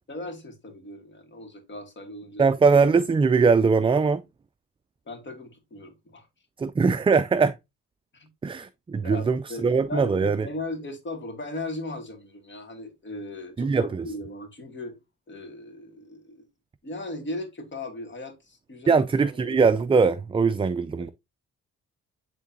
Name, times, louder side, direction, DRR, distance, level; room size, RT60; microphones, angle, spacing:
voice 1, 0.1-2.5 5.1-6.3 8.1-8.3 9.0-14.9 15.3-16.4 16.8-19.0 19.4-19.6 21.0-21.1, left 2 dB, 40° left, 2.2 m, -37 dB
voice 2, 2.4-4.2 6.6-7.6 8.4-10.5 13.6-14.1 18.9-21.1, right 5 dB, 20° right, 0.4 m, -21 dB
9.9 x 3.8 x 2.7 m
cardioid pair, 90°, 30 cm